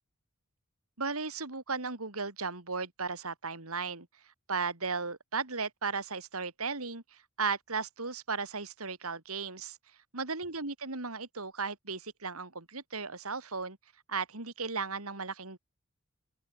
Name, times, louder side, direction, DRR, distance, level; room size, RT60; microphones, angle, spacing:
voice 1, 1.0-4.1 4.5-9.8 10.1-13.8 14.1-15.6, right 4 dB, 80° right, 3.2 m, -36 dB
head